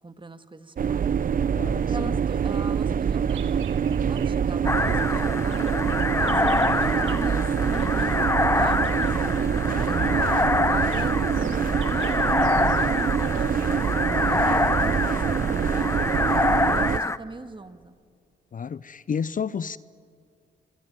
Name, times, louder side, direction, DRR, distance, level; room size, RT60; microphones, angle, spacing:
voice 1, 0.0-1.2 1.9-3.5 4.0-5.7 6.2-9.1 9.4-16.3 16.7-18.0, right 3 dB, 25° right, 9 dB, 2.0 m, -40 dB
sound 1, 0.8-17.0, right 7 dB, 45° right, 0.6 m, -25 dB
voice 2, 1.6-2.1 10.0-10.2 18.5-19.8, left 7 dB, 45° left, 18 dB, 0.6 m, -31 dB
Bird vocalization bird call bird song, 2.3-4.6 4.9-14.4, right 10 dB, 80° right, 1.6 m, -49 dB
sound 2, 4.7-17.2, left 2 dB, 15° left, 1.0 m, -25 dB
25.0 x 24.0 x 9.4 m, 2.2 s
supercardioid pair, 60°, 20 cm